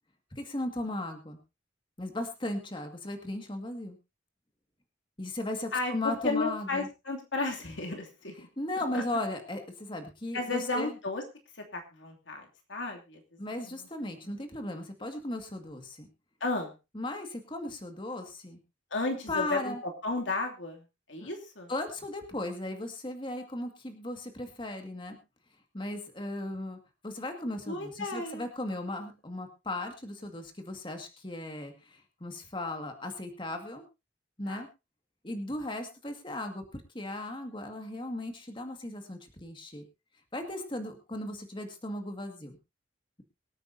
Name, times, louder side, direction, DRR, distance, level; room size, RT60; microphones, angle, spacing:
voice 1, 0.4-1.4 2.0-4.0 5.2-6.9 8.6-10.9 13.4-16.1 16.9-18.6 19.3-19.8 21.2-21.3 21.7-25.2 25.7-33.8 34.4-34.7 35.2-39.8 40.3-42.6, left 1 dB, 25° left, 5 dB, 2.1 m, -36 dB
voice 2, 5.7-8.5 8.9-9.0 10.3-11.2 11.7-13.2 14.2-14.4 16.4-16.7 18.9-19.7 20.0-20.8 21.1-21.7 27.7-28.4 34.5-34.6, left 3 dB, 85° left, 3 dB, 2.9 m, -33 dB
24.0 x 9.0 x 2.8 m, 0.27 s
head